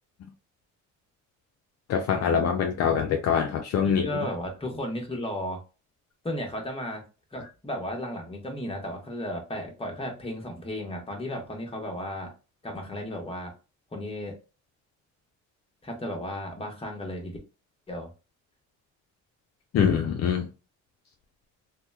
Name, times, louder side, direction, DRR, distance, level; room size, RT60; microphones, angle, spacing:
voice 1, 1.9-4.1 19.7-20.5, left 7 dB, 55° left, 0.4 m, -24 dB
voice 2, 3.8-5.6 6.2-7.0 7.3-12.3 12.6-13.5 13.9-14.3 15.8-17.3 17.9-18.1, left 1 dB, 20° left, 1.0 m, -34 dB
2.8 x 2.1 x 2.2 m
cardioid pair, 90°, 30 cm